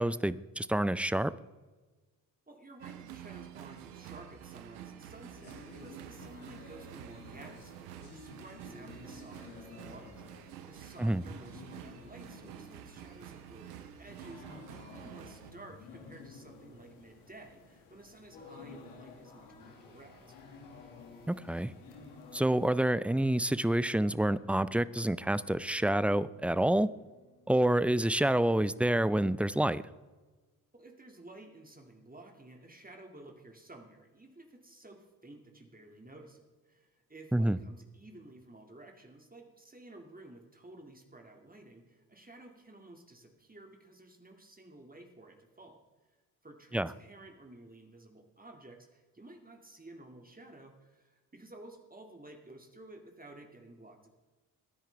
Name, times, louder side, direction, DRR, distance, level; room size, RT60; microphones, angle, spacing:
voice 1, 0.0-1.3 11.0-11.2 21.3-21.7 22.3-26.9 27.5-29.8 37.3-37.6 46.7-46.9, right 1 dB, 5° right, 17 dB, 0.4 m, -28 dB
voice 2, 2.5-20.4 30.7-45.8 46.4-54.1, right 2 dB, 20° right, 3 dB, 2.3 m, -53 dB
sound 1, 2.8-15.5, right 10 dB, 85° right, 1.1 m, -49 dB
sound 2, 5.1-22.8, left 4 dB, 75° left, 2.3 m, -53 dB
sound 3, 19.6-29.2, left 1 dB, 45° left, 3.4 m, -61 dB
21.0 x 10.5 x 3.5 m, 1.3 s
hypercardioid pair, 45°, 46 cm